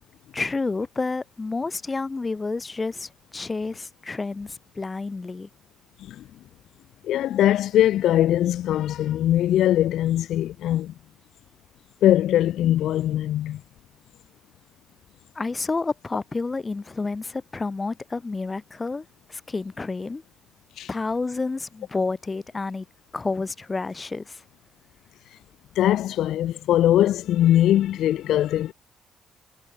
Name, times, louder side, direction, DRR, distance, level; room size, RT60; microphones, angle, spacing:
voice 1, 0.3-5.5 15.3-20.2 20.9-22.8 23.1-24.4, left 3 dB, 25° left, 2.9 m, -30 dB
voice 2, 7.0-10.9 12.0-13.6 20.8-20.9 25.8-28.7, left 12 dB, 80° left, 0.4 m, -21 dB
cardioid pair, 90°, 0 cm